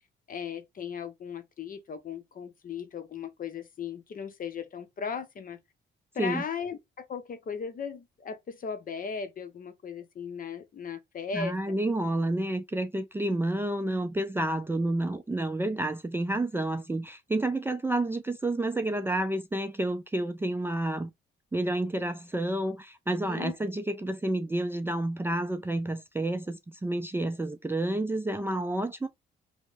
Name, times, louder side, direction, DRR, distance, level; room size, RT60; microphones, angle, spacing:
voice 1, 0.3-5.6 6.1-11.6 23.2-23.5, left 6 dB, 45° left, 0.7 m, -37 dB
voice 2, 11.3-21.1 21.5-29.1, right 1 dB, 10° right, 0.3 m, -30 dB
3.0 x 2.1 x 3.3 m
cardioid pair, 90°, 20 cm